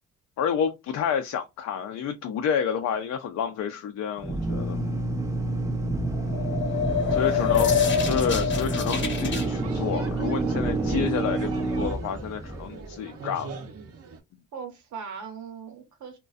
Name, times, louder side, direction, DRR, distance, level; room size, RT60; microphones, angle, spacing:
voice 1, 0.4-4.8 7.1-7.8 8.0-13.5, left 7 dB, 60° left, 0.4 m, -29 dB
Drill, 4.2-12.8, right 2 dB, 10° right, 0.4 m, -28 dB
sound 1, 6.1-9.5, left 7 dB, 40° left, 0.8 m, -25 dB
voice 2, 6.2-6.8 7.1-7.6 14.5-16.2, right 6 dB, 70° right, 0.9 m, -41 dB
sound 2, 9.0-14.2, right 5 dB, 50° right, 0.6 m, -40 dB
2.4 x 2.2 x 2.3 m
cardioid pair, 90°, 30 cm